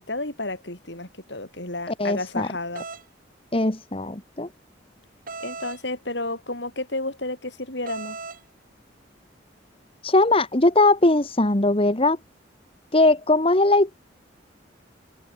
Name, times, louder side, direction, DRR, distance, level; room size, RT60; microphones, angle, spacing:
voice 1, 0.0-2.8 5.4-8.2, left 2 dB, 65° left, 8.0 m, -31 dB
voice 2, 2.0-2.5 3.5-4.5 10.0-12.2 12.9-14.0, left 2 dB, 30° left, 1.6 m, -20 dB
sound 1, 2.8-3.0 5.3-5.8 7.9-8.4, right 4 dB, 45° right, 3.9 m, -36 dB
head